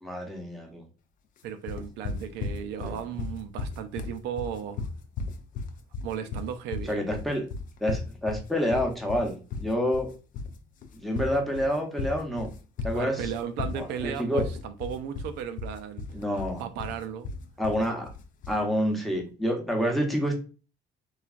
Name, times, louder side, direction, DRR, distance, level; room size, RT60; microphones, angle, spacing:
voice 1, 0.0-0.8 2.8-3.0 6.8-7.5 7.8-10.1 10.9-12.5 12.8-13.3 13.7-14.5 16.1-16.6 17.6-18.1 18.5-20.4, equal, ahead, 0.8 m, -28 dB
voice 2, 1.4-4.9 6.0-7.0 12.9-16.0 16.6-17.3, right 8 dB, 85° right, 0.4 m, -35 dB
sound 1, 1.7-18.6, left 4 dB, 50° left, 0.5 m, -35 dB
3.1 x 2.3 x 2.4 m
cardioid pair, 110°, 17 cm